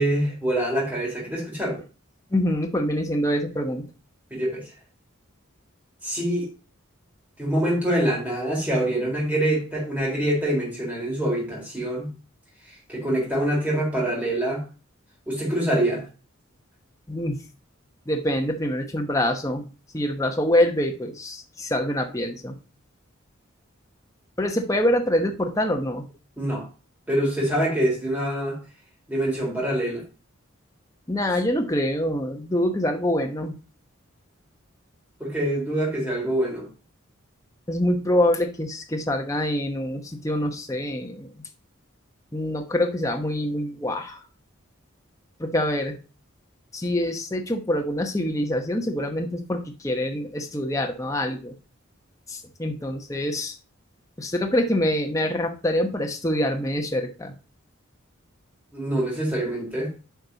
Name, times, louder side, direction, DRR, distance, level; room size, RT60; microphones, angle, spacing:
voice 1, 0.0-1.8 4.3-4.6 6.0-6.5 7.4-12.1 12.9-14.6 15.3-16.0 26.4-26.6 27.1-28.6 29.1-30.0 35.2-36.7 58.7-59.9, right 1 dB, 5° right, -4 dB, 3.8 m, -25 dB
voice 2, 2.3-3.9 17.1-17.4 18.1-19.7 19.9-22.6 24.4-26.1 31.1-33.5 37.7-41.4 42.3-44.2 45.4-46.0 46.7-51.5 52.3-53.6 54.2-57.3, left 1 dB, 15° left, 3 dB, 1.0 m, -25 dB
9.4 x 5.3 x 4.0 m, 0.33 s
head